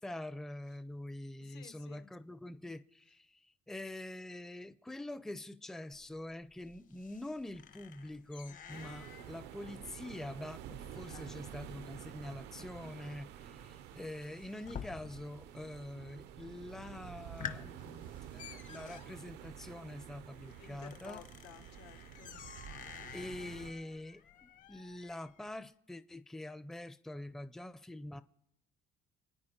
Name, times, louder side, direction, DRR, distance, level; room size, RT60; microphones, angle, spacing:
voice 1, 0.0-3.4 3.7-21.2 23.1-28.2, left 1 dB, 5° left, 0.5 m, -45 dB
voice 2, 1.4-2.1 11.1-11.4 20.6-22.4, left 10 dB, 80° left, 1.2 m, -55 dB
sound 1, 5.9-15.5 15.7-16.3 16.7-16.8 17.2-25.5, left 7 dB, 50° left, 1.0 m, -51 dB
sound 2, 8.7-23.7, right 10 dB, 85° right, 0.7 m, -50 dB
27.0 x 9.4 x 4.4 m
cardioid pair, 110°, 17 cm